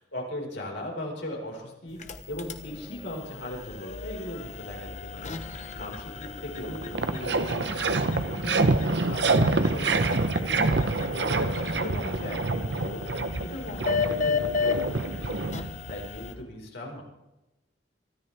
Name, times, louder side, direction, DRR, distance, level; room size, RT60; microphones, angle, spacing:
voice 1, 0.1-10.8 11.1-17.0, left 1 dB, 85° left, -1 dB, 5.3 m, -39 dB
sound 1, 1.9-16.3, left 5 dB, 40° left, 1.1 m, -35 dB
sound 2, 6.3-6.4 6.6-16.0, right 3 dB, 70° right, 1.0 m, -27 dB
23.5 x 13.5 x 3.6 m, 0.96 s
head